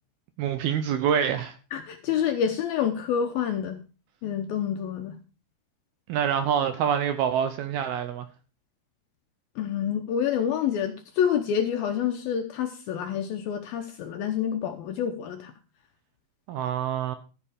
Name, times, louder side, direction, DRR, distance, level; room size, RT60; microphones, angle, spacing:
voice 1, 0.4-1.6 6.1-8.3 16.5-17.2, right 8 dB, 75° right, 2.4 m, -26 dB
voice 2, 1.7-3.8 4.2-5.2 9.6-15.5, left 8 dB, 75° left, 2.3 m, -28 dB
14.0 x 7.5 x 4.9 m
omnidirectional pair, 5.2 m